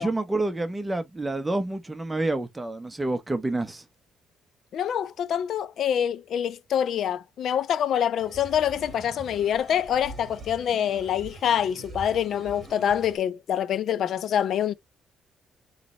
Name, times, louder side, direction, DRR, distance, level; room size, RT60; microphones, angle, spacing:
voice 1, 0.0-3.8, right 2 dB, 15° right, 0.9 m, -28 dB
voice 2, 4.7-14.7, left 9 dB, 70° left, 0.4 m, -26 dB
sound 1, 8.2-13.2, right 3 dB, 40° right, 1.3 m, -44 dB
3.8 x 3.2 x 3.0 m
cardioid pair, 90°, 0 cm